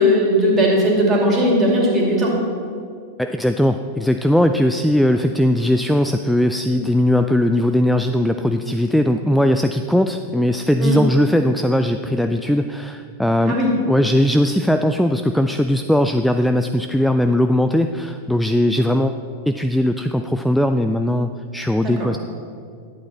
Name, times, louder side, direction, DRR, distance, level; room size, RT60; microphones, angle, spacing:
voice 1, 0.0-2.3 10.8-11.0 13.4-13.7 21.8-21.9, equal, 25° right, -2 dB, 2.6 m, -17 dB
voice 2, 3.2-13.6 13.8-19.1 19.5-22.2, left 1 dB, ahead, 7 dB, 0.3 m, -19 dB
11.5 x 8.5 x 4.2 m, 2.3 s
figure-of-eight pair, 90°, 0 cm